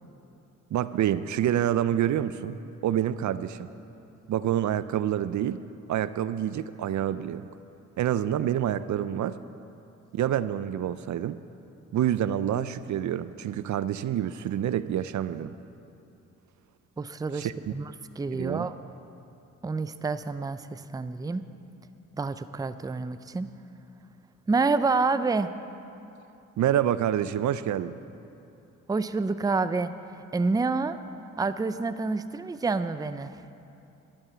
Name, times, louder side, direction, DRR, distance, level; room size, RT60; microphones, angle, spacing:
voice 1, 0.7-3.7 4.3-5.6 5.9-7.5 8.0-9.4 10.1-11.4 11.9-15.5 17.3-17.7 18.3-18.7 26.6-28.0, right 11 dB, 65° right, 14 dB, 0.5 m, -27 dB
voice 2, 17.0-18.8 19.6-21.4 22.2-23.5 24.5-25.5 28.9-29.9 30.3-31.0 31.4-33.4, right 3 dB, 10° right, 12 dB, 0.4 m, -28 dB
11.5 x 8.9 x 6.9 m, 2.7 s
cardioid pair, 70°, 31 cm